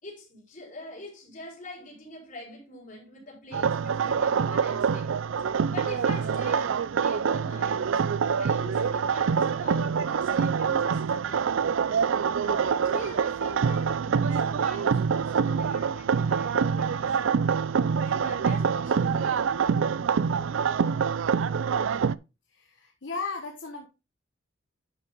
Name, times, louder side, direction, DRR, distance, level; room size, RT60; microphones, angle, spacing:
voice 1, 0.0-5.2 5.7-11.5 12.4-17.4 18.0-19.5, left 1 dB, 40° left, 4.7 m, -44 dB
sound 1, 3.5-22.2, right 6 dB, 80° right, 0.4 m, -25 dB
voice 2, 22.5-23.9, left 4 dB, 65° left, 1.2 m, -36 dB
10.5 x 5.7 x 3.7 m
head